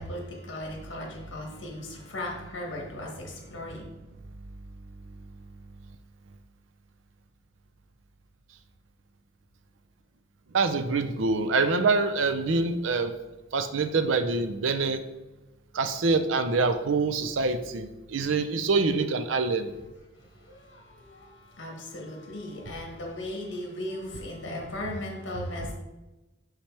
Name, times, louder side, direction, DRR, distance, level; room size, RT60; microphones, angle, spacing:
voice 1, 0.0-3.9 20.5-21.3 21.6-25.7, left 1 dB, 70° left, 0 dB, 1.5 m, -37 dB
voice 2, 10.5-13.1 13.5-15.0 15.8-17.9 18.1-19.7, right 3 dB, 85° right, 9 dB, 0.5 m, -25 dB
5.8 x 5.7 x 3.3 m, 1.1 s
head